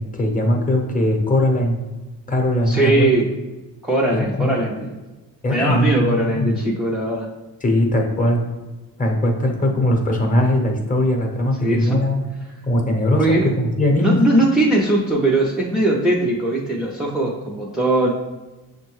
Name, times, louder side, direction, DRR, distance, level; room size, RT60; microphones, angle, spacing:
voice 1, 0.0-1.8 2.3-3.1 4.1-4.5 5.4-6.5 7.6-8.4 9.0-12.2 12.6-14.2, left 1 dB, 20° left, 2 dB, 0.9 m, -20 dB
voice 2, 2.7-3.3 3.8-4.9 5.5-7.3 11.6-12.0 13.2-13.5 14.0-18.1, right 1 dB, ahead, -4 dB, 0.5 m, -20 dB
6.1 x 2.2 x 3.1 m, 1.2 s
cardioid pair, 85°, 39 cm